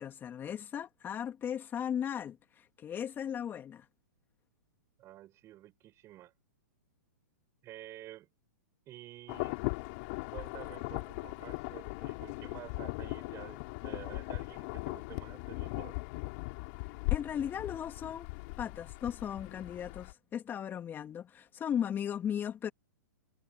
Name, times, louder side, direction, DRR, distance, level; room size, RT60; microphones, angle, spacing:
voice 1, 0.0-3.9 17.1-18.3 18.6-22.7, left 9 dB, 20° left, 2.7 m, -37 dB
voice 2, 5.0-6.3 7.6-8.3 8.9-9.6 10.3-16.0, right 14 dB, 30° right, 7.3 m, -50 dB
Insect / Thunder / Rain, 9.3-20.1, left 29 dB, 45° left, 7.1 m, -39 dB
hypercardioid pair, 120°, 10 cm